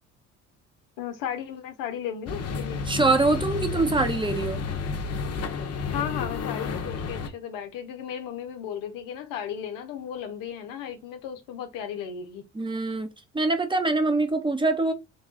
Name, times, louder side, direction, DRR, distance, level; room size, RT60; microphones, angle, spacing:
voice 1, 1.0-2.8 5.9-12.4, left 9 dB, 75° left, 0.8 m, -35 dB
sound 1, 2.3-7.3, left 5 dB, 50° left, 0.9 m, -31 dB
voice 2, 2.9-4.6 12.5-14.9, right 3 dB, 15° right, 1.0 m, -24 dB
3.5 x 2.4 x 3.6 m
supercardioid pair, 70°, 33 cm